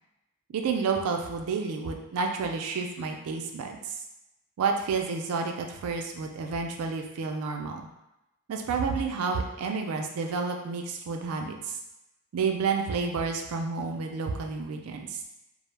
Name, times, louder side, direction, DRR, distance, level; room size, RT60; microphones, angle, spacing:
voice 1, 0.5-4.0 4.6-7.8 8.5-11.8 12.3-15.2, right 5 dB, 80° right, 3 dB, 0.3 m, -30 dB
2.1 x 2.0 x 3.1 m, 0.93 s
head